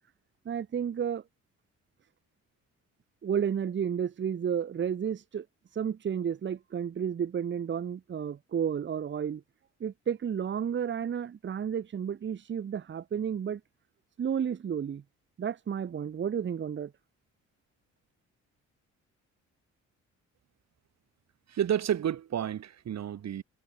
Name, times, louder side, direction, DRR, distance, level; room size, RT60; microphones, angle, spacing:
voice 1, 0.4-1.2 3.2-5.4 5.7-9.4 9.8-13.6 14.2-15.0 15.4-16.9, right 8 dB, 40° right, 1.0 m, -32 dB
voice 2, 21.5-23.4, right 10 dB, 60° right, 2.9 m, -30 dB
cardioid pair, 90°, 30 cm